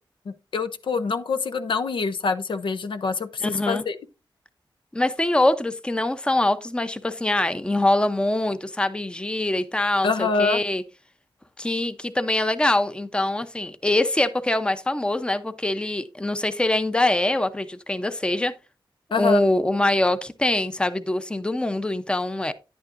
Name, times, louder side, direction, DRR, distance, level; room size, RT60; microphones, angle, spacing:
voice 1, 0.3-4.0 10.0-10.6 19.1-19.4, left 4 dB, 70° left, 0.7 m, -25 dB
voice 2, 3.4-3.8 4.9-10.8 11.6-18.5 19.2-22.5, left 1 dB, 10° left, 0.7 m, -23 dB
10.5 x 8.7 x 2.6 m
wide cardioid pair, 95°, 9 cm